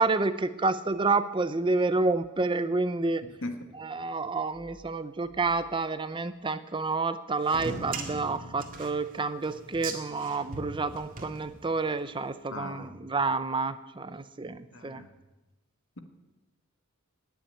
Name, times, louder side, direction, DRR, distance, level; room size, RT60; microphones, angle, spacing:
voice 1, 0.0-3.2 3.8-15.0, right 3 dB, 25° right, 12 dB, 0.6 m, -29 dB
voice 2, 3.4-3.7 12.5-12.9 14.7-15.1, left 2 dB, 65° left, 7 dB, 1.7 m, -38 dB
sound 1, 7.4-12.0, right 3 dB, 40° right, 2.0 m, -39 dB
19.0 x 7.1 x 9.2 m, 1.1 s
head